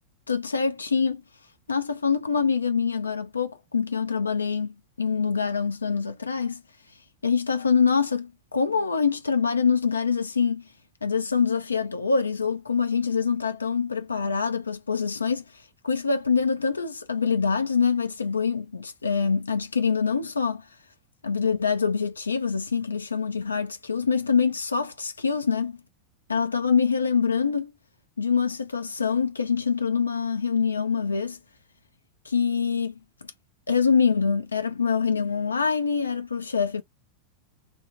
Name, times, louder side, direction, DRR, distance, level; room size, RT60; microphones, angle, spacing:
voice 1, 0.3-1.2 1.7-6.6 7.2-10.7 11.0-20.7 21.2-25.8 26.3-27.7 28.2-31.4 32.3-32.9 33.7-36.8, left 5 dB, 75° left, 0.3 m, -25 dB
2.6 x 2.1 x 2.7 m
figure-of-eight pair, 90°, 0 cm